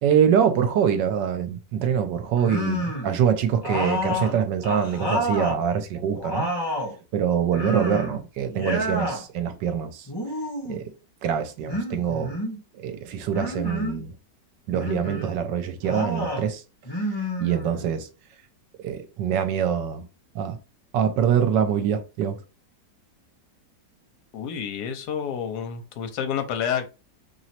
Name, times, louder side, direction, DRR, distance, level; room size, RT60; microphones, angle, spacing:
voice 1, 0.0-6.5 7.1-10.1 10.7-10.9 11.2-12.4 12.7-14.1 14.7-16.6 17.4-18.1 18.8-20.0 20.3-20.6 20.9-22.4, right 8 dB, 80° right, 1.3 m, -24 dB
sound 1, 2.4-3.2 3.6-5.6 6.0-7.0 7.5-8.2 8.5-9.2 10.1-10.8 11.7-12.6 13.3-14.0 14.7-15.3 15.8-16.5 16.8-18.0, left 1 dB, 15° left, 1.1 m, -29 dB
voice 2, 24.3-26.9, left 8 dB, 70° left, 1.3 m, -29 dB
3.0 x 3.0 x 4.2 m
omnidirectional pair, 1.9 m